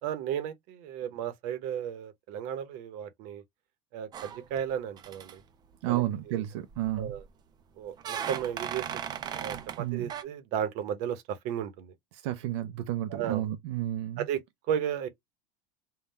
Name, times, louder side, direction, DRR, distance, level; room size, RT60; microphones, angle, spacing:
voice 1, 0.0-3.4 3.9-5.4 5.9-6.4 7.0-7.2 7.8-11.9 13.1-13.5 14.2-14.4 14.7-15.1, right 9 dB, 60° right, 0.9 m, -34 dB
sound 1, 4.1-4.7 5.0-5.3 6.7-7.3 8.0-9.8 10.1-10.2, right 9 dB, 30° right, 0.5 m, -37 dB
voice 2, 5.8-7.2 9.8-10.1 12.1-14.2, right 14 dB, 85° right, 0.6 m, -31 dB
3.8 x 2.3 x 4.0 m
cardioid pair, 150°, 15 cm